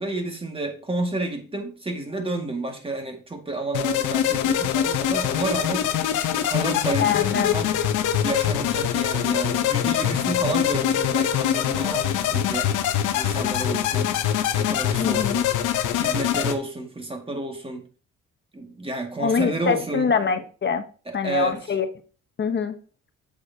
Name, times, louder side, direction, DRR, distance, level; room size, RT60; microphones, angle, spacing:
voice 1, 0.0-6.0 6.4-7.7 8.2-12.8 13.1-14.2 14.6-15.5 15.9-17.9 18.5-20.1 21.1-21.7, right 2 dB, 20° right, 1.9 m, -30 dB
sound 1, 3.7-16.5, left 10 dB, 90° left, 0.8 m, -23 dB
voice 2, 7.0-7.6 15.0-15.4 19.2-20.8 21.1-21.9 22.4-22.8, left 6 dB, 35° left, 1.0 m, -24 dB
8.0 x 6.5 x 2.8 m
cardioid pair, 90°, 30 cm